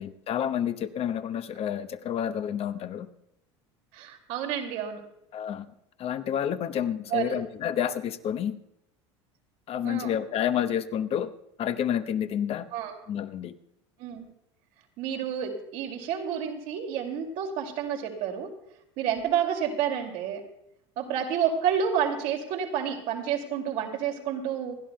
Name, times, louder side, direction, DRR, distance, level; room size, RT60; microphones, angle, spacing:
voice 1, 0.0-3.1 5.3-5.7 6.0-8.6 9.7-11.3 11.6-12.7 13.1-13.5, left 9 dB, 40° left, 10 dB, 0.9 m, -29 dB
voice 2, 3.9-5.0 7.1-7.4 9.8-10.2 12.7-12.9 14.0-14.3 15.0-18.6 19.0-20.4 21.0-24.7, right 8 dB, 60° right, 3 dB, 2.4 m, -29 dB
27.5 x 11.0 x 2.2 m, 0.82 s
hypercardioid pair, 85°, 15 cm